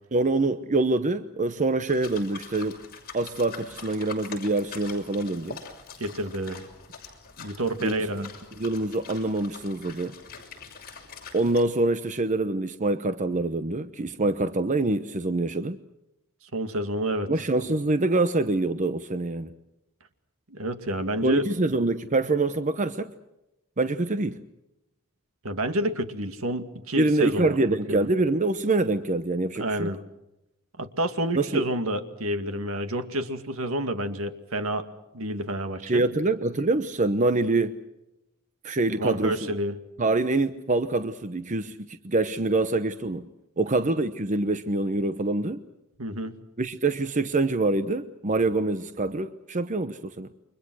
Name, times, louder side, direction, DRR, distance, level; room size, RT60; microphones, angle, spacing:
voice 1, 0.1-2.8 3.1-5.6 7.8-8.3 8.6-10.1 11.3-15.8 17.3-19.5 21.2-23.1 23.8-24.4 27.0-29.9 31.3-31.6 35.8-37.8 38.6-39.4 40.0-43.3 43.6-45.6 46.6-50.3, right 2 dB, 35° right, 0.9 m, -25 dB
sound 1, 1.9-11.6, left 5 dB, 45° left, 6.6 m, -44 dB
voice 2, 6.0-6.7 7.4-8.3 16.5-17.3 20.5-21.4 25.4-28.1 29.6-30.0 30.8-34.9 35.1-36.0 38.9-39.8 46.0-46.4, right 1 dB, 70° right, 2.2 m, -29 dB
29.5 x 24.5 x 6.3 m
head